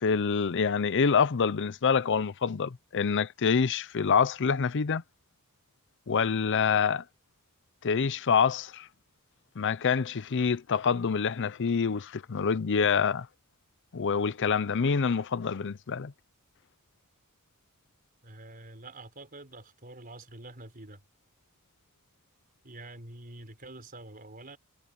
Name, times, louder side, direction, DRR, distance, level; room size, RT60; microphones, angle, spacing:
voice 1, 0.0-5.0 6.1-7.0 7.8-8.9 9.6-13.3 13.9-16.1, left 6 dB, 55° left, 0.6 m, -26 dB
voice 2, 18.2-21.0 22.6-24.6, right 2 dB, 40° right, 4.6 m, -46 dB
head